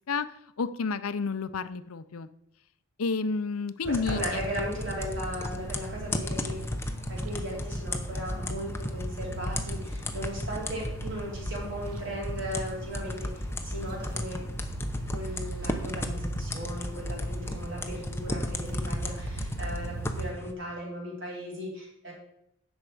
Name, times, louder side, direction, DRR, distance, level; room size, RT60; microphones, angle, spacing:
voice 1, 0.6-2.3 3.0-4.4, left 4 dB, 80° left, 13 dB, 0.6 m, -30 dB
sound 1, 3.8-20.5, left 1 dB, 10° left, 0.7 m, -34 dB
voice 2, 3.8-6.6 7.1-14.5 15.1-22.1, equal, 60° right, -4 dB, 4.5 m, -37 dB
sound 2, 4.1-20.3, right 5 dB, 85° right, 0.5 m, -43 dB
10.5 x 7.2 x 5.0 m, 0.76 s
head